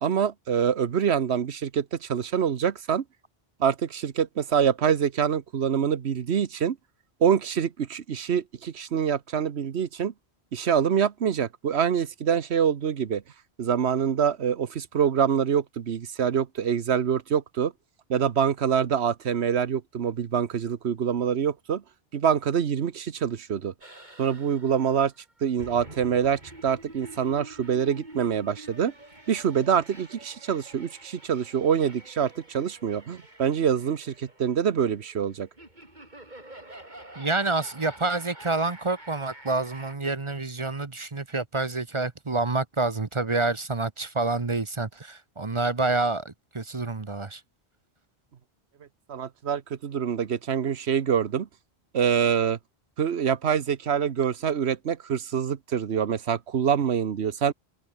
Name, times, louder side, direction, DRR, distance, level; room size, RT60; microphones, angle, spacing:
voice 1, 0.0-3.0 3.6-6.8 7.2-10.1 10.5-13.2 13.6-17.7 18.1-21.8 22.1-23.7 24.2-25.1 25.4-28.9 29.3-35.5 49.1-51.5 51.9-52.6 53.0-57.5, right 8 dB, 85° right, 1.3 m, -25 dB
sound 1, 23.8-40.0, right 1 dB, 45° right, 5.1 m, -47 dB
voice 2, 37.1-47.4, right 3 dB, 30° right, 1.0 m, -28 dB
omnidirectional pair, 1.1 m